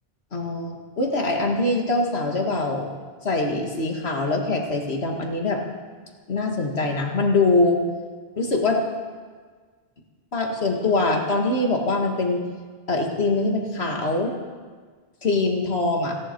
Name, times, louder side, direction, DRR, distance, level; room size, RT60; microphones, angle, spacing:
voice 1, 0.3-2.9 3.2-5.6 6.3-7.8 8.4-8.8 10.3-12.4 12.9-14.3 15.2-16.2, left 2 dB, 85° left, 2 dB, 2.2 m, -23 dB
29.0 x 10.5 x 4.6 m, 1.5 s
omnidirectional pair, 1.0 m